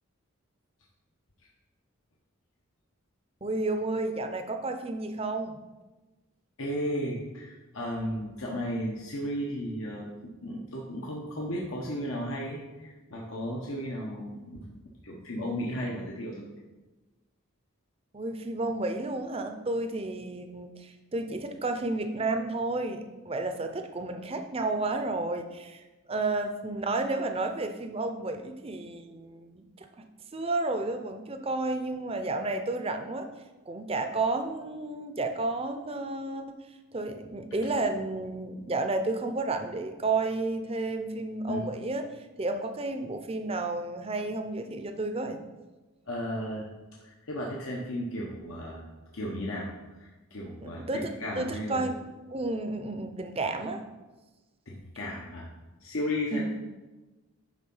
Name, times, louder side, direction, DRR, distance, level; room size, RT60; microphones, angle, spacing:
voice 1, 3.4-5.6 18.1-25.8 26.1-30.0 30.3-33.3 33.7-36.6 36.9-42.0 42.4-45.4 50.6-51.9 52.3-53.8 56.3-56.4, right 2 dB, 25° right, 6 dB, 0.6 m, -31 dB
voice 2, 6.6-16.5 41.5-41.6 46.1-46.7 47.0-48.9 49.1-49.7 50.0-51.9 54.7-55.5 55.8-56.4, equal, 70° left, -2 dB, 1.0 m, -34 dB
10.0 x 3.7 x 5.5 m, 1.2 s
head